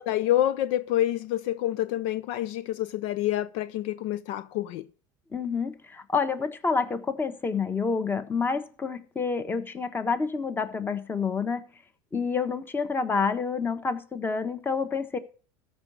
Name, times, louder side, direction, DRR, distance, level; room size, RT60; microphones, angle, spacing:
voice 1, 0.0-4.8, left 13 dB, 65° left, 0.6 m, -27 dB
voice 2, 5.3-11.6 12.1-15.2, left 5 dB, 20° left, 1.3 m, -28 dB
13.0 x 4.8 x 6.3 m
supercardioid pair, 110°, 11 cm